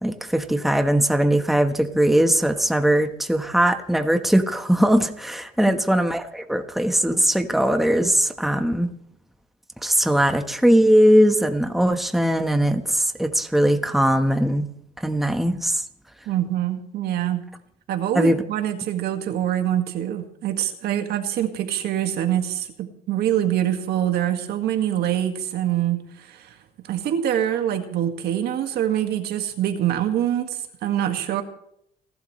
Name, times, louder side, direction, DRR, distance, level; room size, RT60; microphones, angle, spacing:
voice 1, 0.0-8.9 9.8-14.7 15.0-15.8 18.1-18.4, right 1 dB, ahead, 6 dB, 1.2 m, -20 dB
voice 2, 16.3-17.4 17.9-26.6 26.9-31.4, right 11 dB, 75° right, 6 dB, 1.9 m, -25 dB
30.0 x 12.0 x 3.2 m, 0.72 s
cardioid pair, 110°, 17 cm